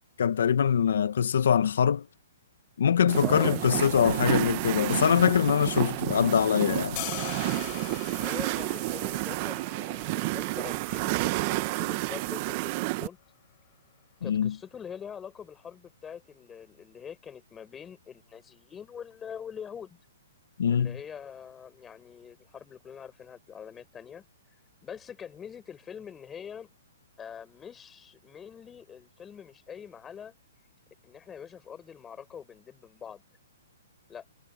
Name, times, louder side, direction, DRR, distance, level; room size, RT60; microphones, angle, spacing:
voice 1, 0.2-2.0 2.8-7.0 14.2-14.5 20.6-21.0, left 8 dB, 70° left, 1.1 m, -23 dB
sound 1, 3.1-13.1, right 22 dB, 35° right, 1.0 m, -30 dB
voice 2, 3.2-4.4 8.1-13.2 14.2-20.0 20.7-24.2 24.8-26.7 27.2-30.3 31.0-33.2 34.1-34.3, left 7 dB, 15° left, 7.0 m, -44 dB
sound 2, 7.0-13.1, left 28 dB, 35° left, 5.2 m, -43 dB
hypercardioid pair, 150°, 0 cm